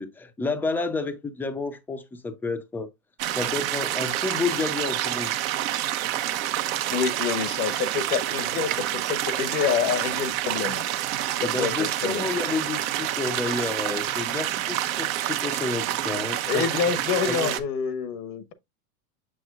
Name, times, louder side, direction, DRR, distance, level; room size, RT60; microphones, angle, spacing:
voice 1, 0.0-2.9 3.4-5.3 11.4-16.7 17.3-17.5, left 3 dB, 5° left, 0.4 m, -30 dB
sound 1, 3.2-17.6, right 13 dB, 60° right, 0.9 m, -28 dB
voice 2, 6.9-10.8 11.4-12.3 16.5-18.5, left 7 dB, 85° left, 1.2 m, -27 dB
6.9 x 6.2 x 2.3 m
supercardioid pair, 125°, 46 cm